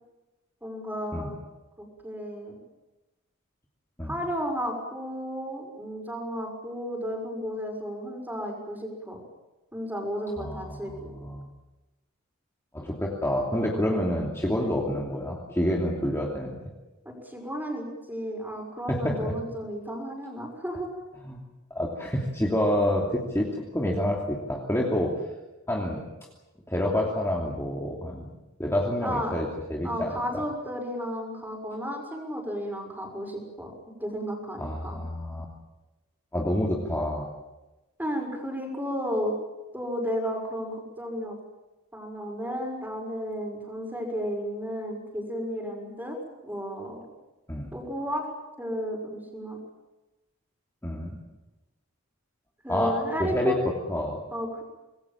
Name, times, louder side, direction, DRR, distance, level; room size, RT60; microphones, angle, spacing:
voice 1, 0.6-1.4 1.8-2.6 4.0-9.2 9.7-11.3 14.7-15.0 17.0-20.9 29.0-29.3 29.8-33.7 34.0-35.0 38.0-39.4 39.7-41.4 41.9-46.2 46.4-47.0 47.7-48.3 48.6-49.6 52.6-53.6 54.3-54.6, equal, 10° right, 3 dB, 6.1 m, -33 dB
voice 2, 10.4-11.5 12.7-16.6 18.9-19.3 21.2-21.4 21.7-23.5 23.7-25.1 25.7-26.1 26.7-28.3 28.6-30.2 34.6-35.4 36.3-37.3 47.5-47.7 50.8-51.2 52.7-52.9 53.2-53.6 53.9-54.2, left 1 dB, 10° left, -3 dB, 2.9 m, -28 dB
26.0 x 21.0 x 7.5 m, 1.0 s
head